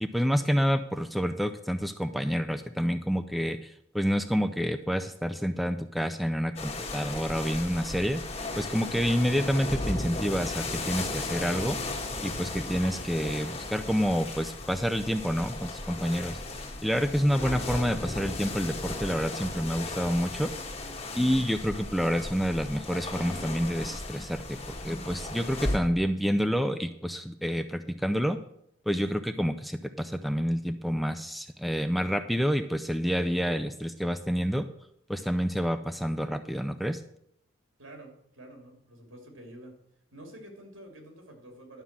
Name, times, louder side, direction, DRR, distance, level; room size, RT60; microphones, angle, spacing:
voice 1, 0.0-8.2 8.6-11.8 12.2-16.4 16.8-20.5 21.1-28.4 28.9-34.7 35.1-37.0, equal, ahead, 9 dB, 0.4 m, -28 dB
sound 1, 6.6-25.8, left 2 dB, 30° left, 1.5 m, -36 dB
voice 2, 37.8-39.7 40.1-41.8, right 1 dB, 85° right, 3 dB, 2.8 m, -48 dB
11.5 x 5.6 x 7.4 m, 0.75 s
head